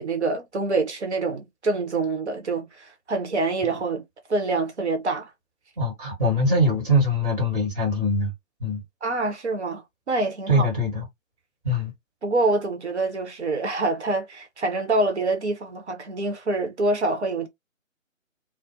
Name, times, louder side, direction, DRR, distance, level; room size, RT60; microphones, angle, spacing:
voice 1, 0.0-4.0 4.3-5.3 9.0-10.7 12.2-17.5, right 2 dB, 55° right, 1.0 m, -26 dB
voice 2, 5.8-8.3 8.6-8.8 10.5-11.0 11.6-11.9, equal, 30° right, 1.2 m, -22 dB
2.5 x 2.1 x 2.7 m
figure-of-eight pair, 145°, 40 cm